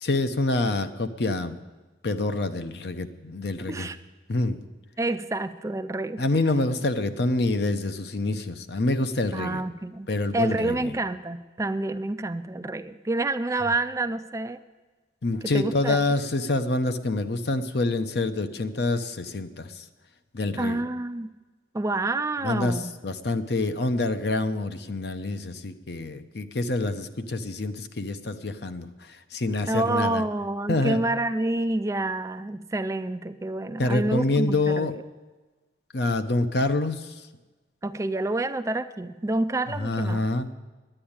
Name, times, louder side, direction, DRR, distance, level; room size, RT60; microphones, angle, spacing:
voice 1, 0.0-1.6 2.0-3.9 4.3-4.6 6.2-9.6 10.1-10.9 15.2-19.8 20.3-20.8 22.4-22.8 23.0-30.2 30.7-31.0 33.8-34.9 35.9-37.3 39.7-40.5, left 2 dB, 65° left, 9 dB, 0.8 m, -26 dB
voice 2, 5.0-6.2 9.3-10.1 10.3-14.6 15.5-16.0 20.6-21.3 21.7-22.9 29.7-34.9 37.8-40.2, right 2 dB, 15° right, 11 dB, 0.4 m, -28 dB
10.0 x 10.0 x 8.7 m, 1.2 s
head